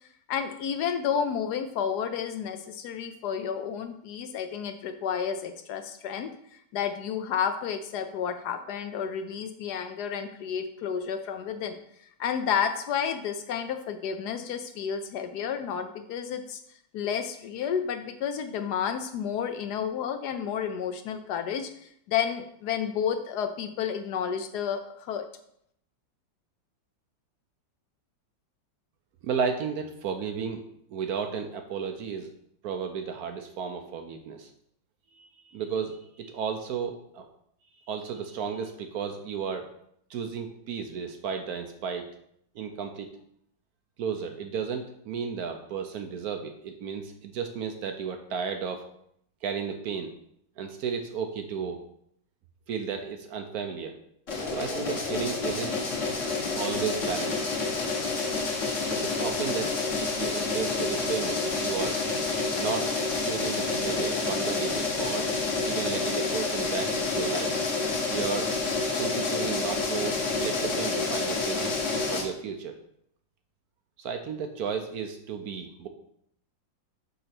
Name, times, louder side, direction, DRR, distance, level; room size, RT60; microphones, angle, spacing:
voice 1, 0.3-6.3 6.7-16.6 16.9-25.2, left 8 dB, 70° left, 7 dB, 1.0 m, -31 dB
voice 2, 29.2-30.6 30.9-32.3 32.6-34.5 35.2-37.3 37.9-39.7 40.1-42.1 42.5-43.1 44.0-48.8 49.4-50.1 50.6-51.8 52.7-54.0 54.5-55.8 56.5-57.4 58.9-62.0 62.5-65.3 65.6-67.5 68.1-68.5 68.9-71.8 72.1-72.8 74.0-75.9, right 6 dB, 70° right, 6 dB, 0.9 m, -33 dB
sound 1, 54.3-72.2, left 3 dB, 45° left, 1.4 m, -29 dB
5.4 x 3.9 x 5.9 m, 0.71 s
omnidirectional pair, 2.0 m